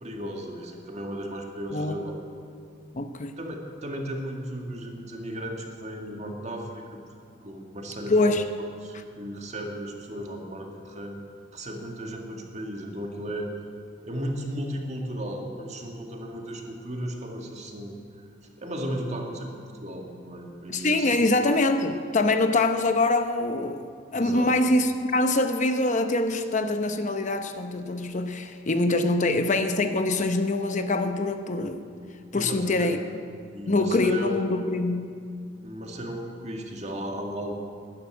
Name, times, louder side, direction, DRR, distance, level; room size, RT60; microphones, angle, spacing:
voice 1, 0.0-2.1 3.4-7.0 7.4-8.4 8.8-11.2 11.5-13.5 14.0-18.3 18.6-21.3 24.1-24.5 32.3-33.0 33.5-34.3 35.6-37.5, right 1 dB, 40° right, 1 dB, 2.0 m, -35 dB
voice 2, 2.9-3.3 8.1-8.4 20.7-31.9 32.3-33.0 33.7-35.1, left 2 dB, 40° left, 7 dB, 0.8 m, -24 dB
13.0 x 11.5 x 9.5 m, 2.3 s
head